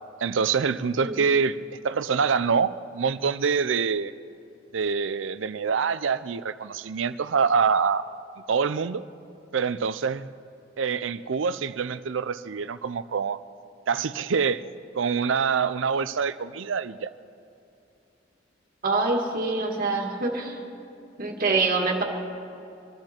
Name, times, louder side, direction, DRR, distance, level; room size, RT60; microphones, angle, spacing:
voice 1, 0.2-1.6 1.8-4.1 4.7-8.0 8.5-9.0 9.5-10.3 10.8-13.4 13.9-14.7 15.0-17.1, right 6 dB, 75° right, 14 dB, 0.5 m, -25 dB
voice 2, 18.8-20.6 21.2-22.0, right 3 dB, 50° right, 1 dB, 2.1 m, -25 dB
24.5 x 12.0 x 4.4 m, 2.7 s
head